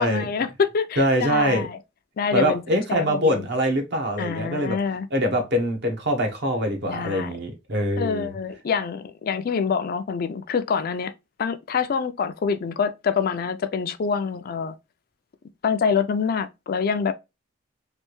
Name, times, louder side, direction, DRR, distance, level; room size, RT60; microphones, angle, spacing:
voice 1, 0.0-1.8 2.2-2.6 2.9-3.4 4.2-5.1 6.9-7.3 8.0-11.1 11.4-14.7 15.6-17.1, left 6 dB, 50° left, 0.4 m, -26 dB
voice 2, 1.0-1.7 2.3-4.8 5.1-8.3, equal, 55° right, 1.0 m, -23 dB
3.3 x 2.6 x 2.9 m
head